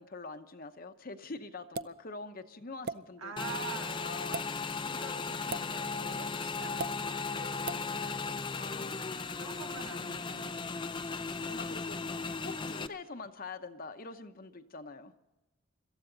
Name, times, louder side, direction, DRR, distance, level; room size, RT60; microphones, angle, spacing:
voice 1, 0.0-4.4 8.6-10.0 11.5-15.1, left 3 dB, 40° left, 8 dB, 0.8 m, -45 dB
sound 1, 1.7-2.0 2.8-3.0 4.2-4.5 5.5-5.7 6.8-6.9 7.7-7.8, right 3 dB, 45° right, 0.5 m, -36 dB
voice 2, 3.2-4.0 4.8-8.2 9.3-10.9, right 4 dB, 75° right, 1 dB, 2.7 m, -46 dB
Motorcycle / Engine, 3.4-12.9, left 4 dB, 20° left, 0.4 m, -36 dB
25.5 x 14.0 x 4.0 m, 1.0 s
head